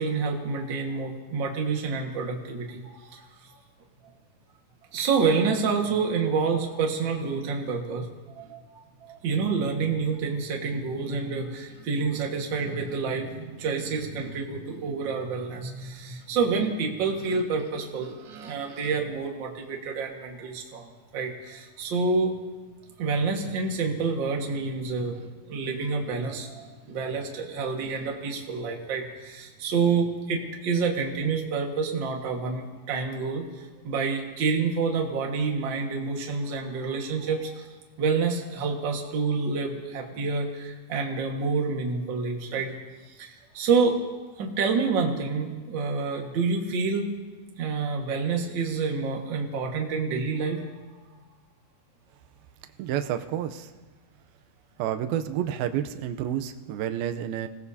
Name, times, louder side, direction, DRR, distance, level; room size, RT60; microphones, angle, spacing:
voice 1, 0.0-3.6 4.9-8.1 8.3-22.3 23.0-37.7 38.0-42.7 43.2-44.0 44.4-47.1 47.6-50.6, right 4 dB, 50° right, 1 dB, 1.4 m, -28 dB
voice 2, 52.8-53.7 54.8-57.5, right 10 dB, 75° right, 8 dB, 2.4 m, -29 dB
26.5 x 18.0 x 2.8 m, 1.3 s
omnidirectional pair, 4.6 m